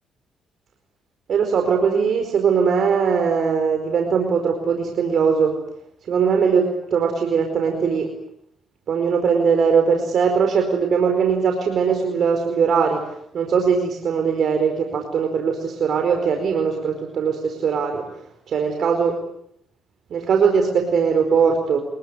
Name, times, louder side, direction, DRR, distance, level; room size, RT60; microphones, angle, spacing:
voice 1, 1.3-5.5 6.1-8.1 8.9-18.0 18.5-19.2 20.1-21.8, right 6 dB, 60° right, 4 dB, 4.7 m, -20 dB
29.0 x 21.5 x 8.1 m, 0.73 s
cardioid pair, 90°, 0 cm